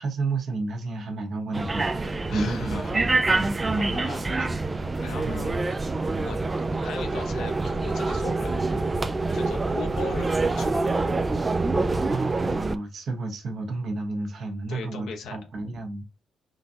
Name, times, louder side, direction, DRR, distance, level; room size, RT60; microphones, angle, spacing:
voice 1, 0.0-3.5 5.3-5.5 12.1-16.2, right 3 dB, 60° right, 1.0 m, -31 dB
sound 1, 1.5-12.8, right 3 dB, 25° right, 0.3 m, -26 dB
voice 2, 2.3-3.1 3.7-4.6 5.0-5.8 6.2-6.4 6.8-8.7 9.3-10.9 14.7-15.4, left 4 dB, 75° left, 0.9 m, -38 dB
3.8 x 2.4 x 2.7 m
cardioid pair, 90°, 0 cm